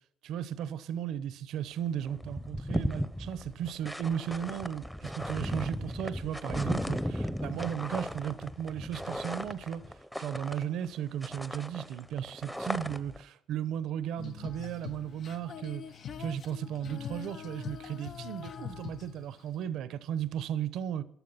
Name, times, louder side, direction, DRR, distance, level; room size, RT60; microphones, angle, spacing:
voice 1, 0.2-9.8 10.2-15.8 16.2-21.0, right 9 dB, 85° right, 0.9 m, -35 dB
sound 1, 1.7-1.8 2.0-11.0 11.2-13.2, equal, 5° left, 0.9 m, -36 dB
Female singing, 14.2-19.6, left 8 dB, 60° left, 0.8 m, -43 dB
14.0 x 11.5 x 5.7 m
cardioid pair, 90°, 0 cm